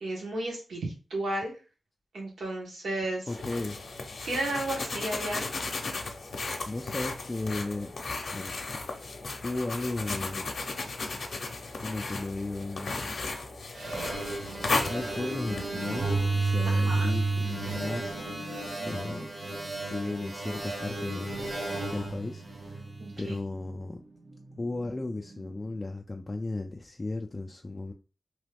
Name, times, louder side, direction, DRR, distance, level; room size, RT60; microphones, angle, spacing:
voice 1, 0.0-1.5 2.1-3.3 4.2-5.5 16.7-17.1 23.0-23.4, right 1 dB, 75° right, 1.2 m, -33 dB
sound 1, 3.3-15.7, left 3 dB, 55° left, 0.6 m, -35 dB
voice 2, 3.3-3.8 6.7-7.9 8.3-8.5 9.4-10.5 11.8-13.3 14.9-19.3 19.9-21.5 21.9-22.4 22.7-22.8 23.2-24.0 24.6-27.9, left 2 dB, 25° left, 0.3 m, -35 dB
sound 2, 13.7-23.2, right 3 dB, 55° right, 1.0 m, -32 dB
sound 3, 13.9-25.9, right 2 dB, 90° right, 1.5 m, -48 dB
2.9 x 2.4 x 3.3 m
wide cardioid pair, 115°, 0 cm